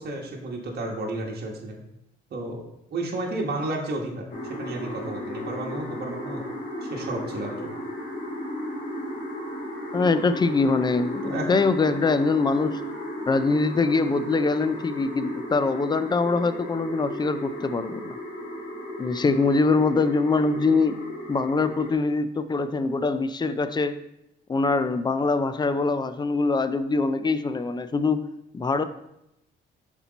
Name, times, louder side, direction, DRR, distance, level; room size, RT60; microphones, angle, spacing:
voice 1, 0.0-1.8 2.3-2.6 2.9-6.4 6.8-7.7 11.2-11.4, right 2 dB, 55° right, -1 dB, 1.3 m, -32 dB
sound 1, 4.3-21.9, left 1 dB, 45° left, 1.8 m, -35 dB
voice 2, 9.9-12.8 13.3-18.1 19.0-21.0 21.3-24.0 24.5-28.8, left 3 dB, 20° left, 12 dB, 0.4 m, -23 dB
5.7 x 4.4 x 4.0 m, 0.84 s
cardioid pair, 90°, 20 cm